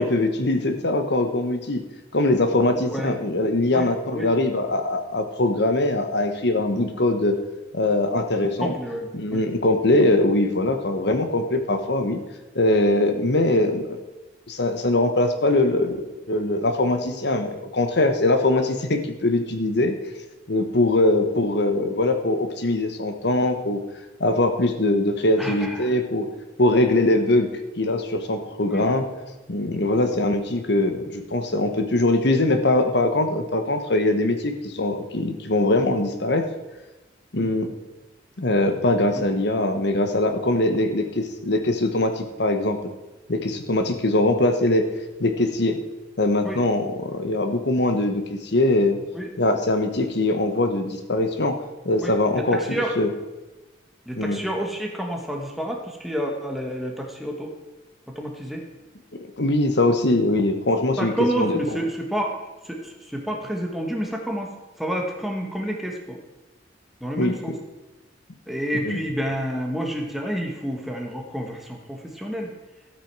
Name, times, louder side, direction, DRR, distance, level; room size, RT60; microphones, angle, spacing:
voice 1, 0.0-1.8 2.1-7.4 7.7-8.7 9.1-12.2 12.5-14.0 14.5-19.9 20.5-23.8 24.2-26.3 26.6-27.5 27.8-29.0 29.5-36.5 37.3-37.7 38.4-42.8 43.3-44.9 45.2-45.8 46.2-49.0 49.4-51.6 51.8-53.1 54.2-54.4 59.4-61.8 67.2-67.4 68.8-69.0, left 2 dB, 65° left, 7 dB, 1.2 m, -22 dB
voice 2, 8.6-9.4 25.4-25.9 28.6-28.9 29.8-30.0 37.4-37.5 46.4-46.6 49.1-49.3 52.0-52.1 52.5-52.9 54.1-57.5 58.1-58.6 61.0-62.4 62.6-66.2 67.0-67.5 68.5-72.5, equal, ahead, 1 dB, 1.6 m, -29 dB
13.0 x 8.8 x 4.8 m, 1.1 s
head